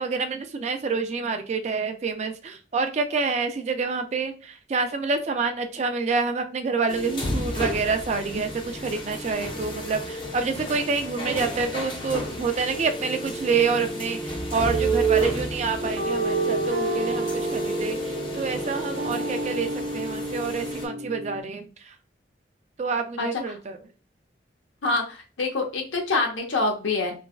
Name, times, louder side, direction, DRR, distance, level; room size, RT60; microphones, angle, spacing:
voice 1, 0.0-21.9 22.8-23.8, right 4 dB, 35° right, 7 dB, 0.3 m, -27 dB
sound 1, 6.9-20.9, right 2 dB, 25° left, 0.5 m, -30 dB
sound 2, 15.8-21.4, equal, 65° right, 0.7 m, -32 dB
voice 2, 23.2-23.6 24.8-27.1, left 3 dB, 90° left, 3 dB, 0.8 m, -26 dB
3.3 x 2.1 x 2.3 m, 0.35 s
head